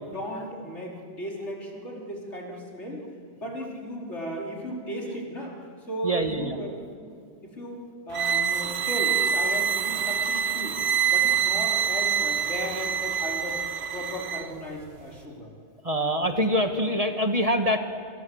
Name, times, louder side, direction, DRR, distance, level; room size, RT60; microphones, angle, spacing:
voice 1, 0.1-3.1 3.3-5.6 5.9-6.7 7.0-7.1 7.4-10.8 11.1-13.6 13.9-15.5, equal, 80° left, -2 dB, 4.9 m, -35 dB
voice 2, 6.0-6.6 8.3-8.4 9.1-9.2 9.5-9.6 11.7-11.9 12.7-12.9 14.1-14.2 15.8-17.8, equal, 30° right, 5 dB, 1.8 m, -26 dB
sound 1, 8.1-14.5, right 8 dB, 65° right, 1.2 m, -26 dB
27.0 x 26.5 x 8.0 m, 2.2 s
omnidirectional pair, 1.2 m